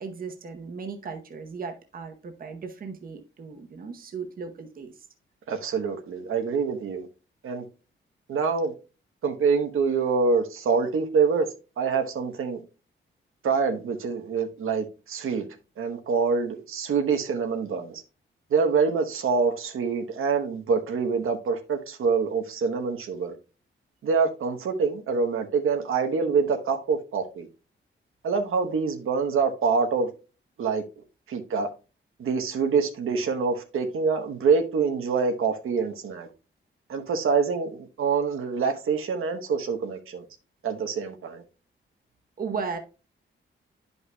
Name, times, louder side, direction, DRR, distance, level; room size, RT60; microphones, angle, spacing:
voice 1, 0.0-4.9 42.4-42.8, right 5 dB, 45° right, 0.9 m, -36 dB
voice 2, 5.5-7.1 7.4-7.6 8.3-8.7 9.2-11.5 11.8-12.6 13.4-15.5 15.8-18.0 18.5-23.3 24.0-27.5 28.2-30.1 30.6-30.8 31.3-31.7 32.2-36.3 36.9-40.2 40.6-41.4, right 5 dB, 85° right, 1.0 m, -25 dB
11.0 x 5.4 x 2.2 m
wide cardioid pair, 170°, 21 cm